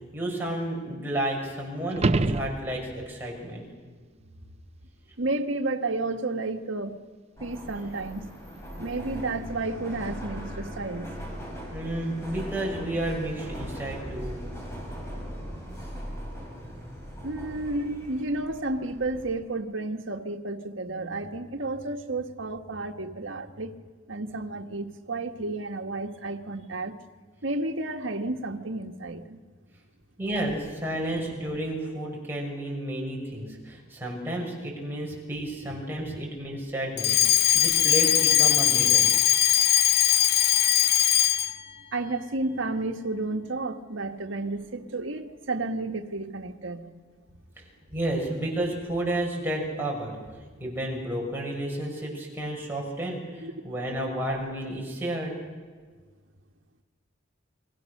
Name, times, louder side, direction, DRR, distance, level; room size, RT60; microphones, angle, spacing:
voice 1, 0.1-3.6 11.7-14.4 30.2-39.1 47.9-50.2 50.6-55.3, right 1 dB, 10° right, -2 dB, 6.4 m, -31 dB
sound 1, 1.9-3.2 8.0-8.1, right 2 dB, 35° right, 0.7 m, -26 dB
voice 2, 5.2-7.0 7.4-8.3 8.8-11.1 17.2-23.8 24.1-27.0 27.4-29.4 41.9-46.9 53.4-53.5, right 2 dB, 80° right, 4 dB, 1.6 m, -31 dB
Subway metro underground, 7.4-19.4, equal, 15° left, 5.7 m, -39 dB
Alarm, 37.0-41.6, left 12 dB, 55° left, 0.8 m, -20 dB
29.0 x 23.0 x 6.6 m, 1.5 s
head